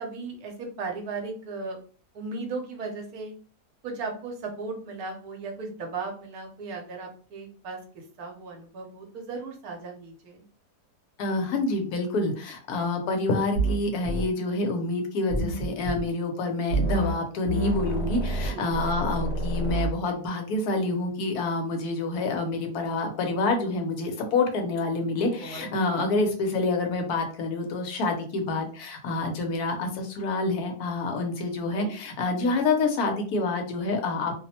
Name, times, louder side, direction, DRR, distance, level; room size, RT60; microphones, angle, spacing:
voice 1, 0.0-1.8 2.1-3.3 3.8-7.8 8.2-10.4 18.5-18.6 25.4-25.7 26.0-26.1 31.7-31.9, right 4 dB, 70° right, 2 dB, 1.1 m, -36 dB
voice 2, 11.2-34.3, left 3 dB, 75° left, 4 dB, 1.1 m, -27 dB
sound 1, 13.5-13.8 14.0-14.3 15.3-16.0 16.7-17.2 17.4-19.9, right 2 dB, 50° left, 1.0 m, -28 dB
2.8 x 2.0 x 2.7 m, 0.41 s
omnidirectional pair, 1.7 m